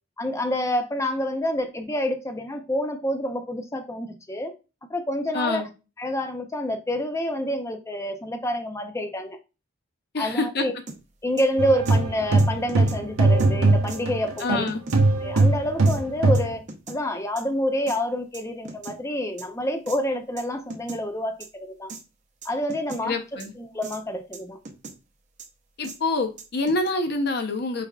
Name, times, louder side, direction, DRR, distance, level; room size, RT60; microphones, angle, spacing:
voice 1, 0.2-4.5 4.9-5.7 6.0-9.4 10.2-10.7 11.2-14.7 15.2-16.6 16.9-21.9 22.4-24.6, left 1 dB, 15° left, 0.4 m, -28 dB
voice 2, 5.3-5.7 10.1-10.6 14.4-14.8 23.0-23.5 25.8-27.9, left 3 dB, 50° left, 0.7 m, -26 dB
sound 1, 10.9-11.0 11.4-11.5 11.8-12.0 12.4-13.0 13.4-13.5 13.9-14.0 14.4-15.0 15.4-15.5 15.9-16.0 16.3-17.0 17.4-17.5 17.9-18.0 18.3-19.0 19.4-19.5 19.9-20.0 20.4-20.5 20.7-21.0 21.4-21.5 21.9-22.0 22.4-23.0 23.4-23.5 23.8-24.0 24.3-25.0 25.4-25.5 25.8-26.0 26.4-26.9, right 3 dB, 35° right, 0.6 m, -39 dB
sound 2, 11.6-14.6 14.9-16.5, right 2 dB, 80° right, 0.7 m, -20 dB
4.7 x 3.4 x 2.3 m
head